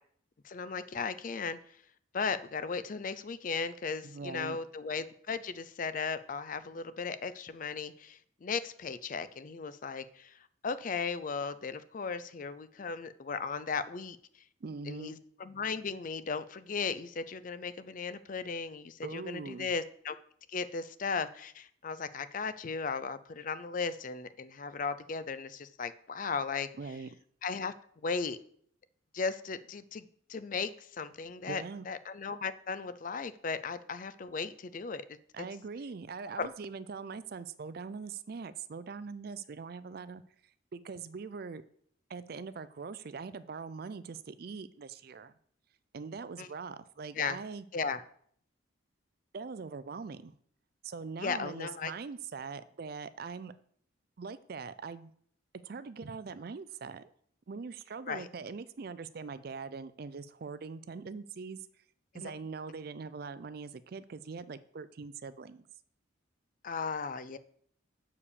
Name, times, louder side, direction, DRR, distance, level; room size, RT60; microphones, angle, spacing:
voice 1, 0.4-1.6 2.1-14.2 14.9-20.2 20.5-26.7 27.4-27.7 28.0-28.4 29.1-35.5 36.4-36.5 46.4-46.5 47.1-47.4 47.7-48.0 51.2-51.9 58.1-58.3 62.1-62.3 66.6-67.4, left 5 dB, 40° left, 14 dB, 0.4 m, -36 dB
voice 2, 4.0-4.6 14.6-15.2 19.0-19.7 26.8-27.1 31.5-31.9 35.3-40.2 40.7-41.6 42.1-45.3 45.9-47.6 49.3-50.3 50.8-53.5 54.2-55.1 55.6-57.1 57.5-61.6 62.1-65.7, right 5 dB, 50° right, 15 dB, 0.4 m, -42 dB
7.1 x 4.8 x 6.7 m, 0.62 s
head